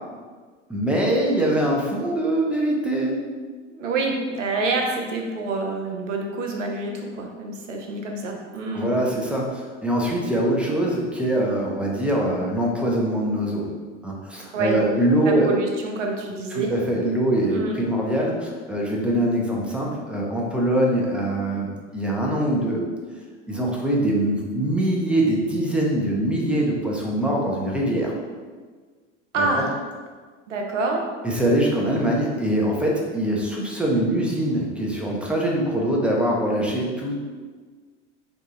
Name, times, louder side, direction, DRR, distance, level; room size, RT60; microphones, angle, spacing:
voice 1, 0.7-3.2 8.7-13.7 14.0-15.5 16.5-22.8 23.5-28.1 29.4-29.5 31.2-37.1, right 1 dB, 5° right, -2 dB, 0.8 m, -23 dB
voice 2, 3.7-8.9 14.5-14.8 15.2-16.7 17.5-17.7 29.3-29.7 30.5-31.0, right 3 dB, 80° right, 1 dB, 0.8 m, -27 dB
3.9 x 2.7 x 3.7 m, 1.5 s
hypercardioid pair, 80°, 37 cm